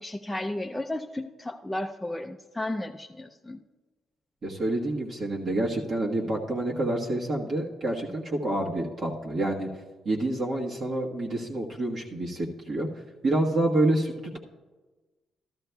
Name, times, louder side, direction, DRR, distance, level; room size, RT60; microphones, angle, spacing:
voice 1, 0.0-3.6, left 1 dB, 10° left, 3 dB, 0.4 m, -33 dB
voice 2, 4.4-9.7 10.0-12.9 13.2-14.4, right 1 dB, 45° right, -3 dB, 1.4 m, -28 dB
14.0 x 12.0 x 2.3 m, 1.3 s
cardioid pair, 90°, 0 cm